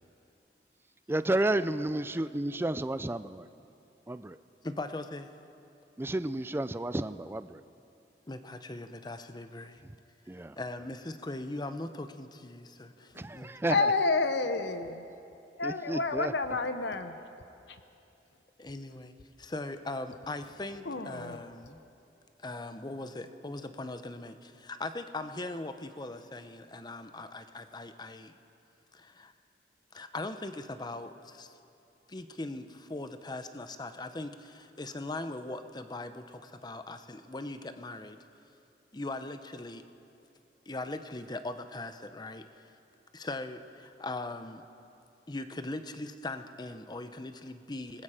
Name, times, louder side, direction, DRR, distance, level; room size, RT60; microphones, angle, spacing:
voice 1, 1.1-3.5 4.1-4.4 6.0-7.6 9.8-9.9 10.3-10.6 13.1-13.9 15.6-16.3, right 1 dB, 15° right, 13 dB, 0.4 m, -31 dB
voice 2, 4.6-5.3 8.3-9.8 10.6-12.9 13.3-13.5 18.6-19.1 19.4-21.8 22.4-28.3 29.2-29.3 29.9-31.5 32.1-38.2 38.9-39.8 40.7-42.4 43.2-44.6 45.3-48.0, left 2 dB, 25° left, 9 dB, 0.8 m, -40 dB
voice 3, 13.7-15.0 15.6-17.2 17.7-17.8 20.8-21.4, left 3 dB, 80° left, 9 dB, 0.9 m, -29 dB
26.5 x 20.0 x 5.0 m, 2.7 s
head